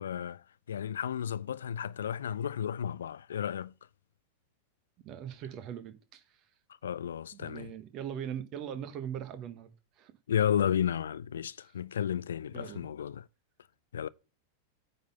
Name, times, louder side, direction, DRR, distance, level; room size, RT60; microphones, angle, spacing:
voice 1, 0.0-3.7 6.8-7.7 10.3-13.2 13.9-14.1, left 9 dB, 65° left, 0.3 m, -33 dB
voice 2, 5.0-6.4 7.3-10.1 12.5-12.9, right 9 dB, 35° right, 1.1 m, -41 dB
9.2 x 4.0 x 5.5 m
figure-of-eight pair, 90°, 0 cm